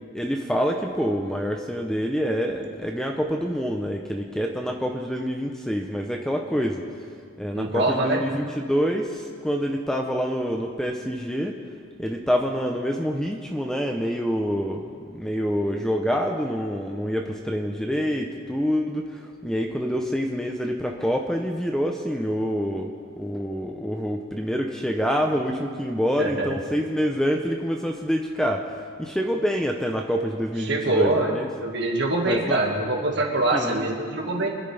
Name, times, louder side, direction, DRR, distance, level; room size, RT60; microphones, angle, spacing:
voice 1, 0.1-6.8 7.4-11.5 12.0-14.9 15.1-22.9 23.2-31.5 32.3-32.6 33.5-33.9, equal, 5° left, 2 dB, 0.6 m, -26 dB
voice 2, 7.5-8.2 26.2-26.5 30.6-34.5, right 2 dB, 55° right, 0 dB, 1.9 m, -24 dB
24.5 x 10.5 x 3.4 m, 2.2 s
head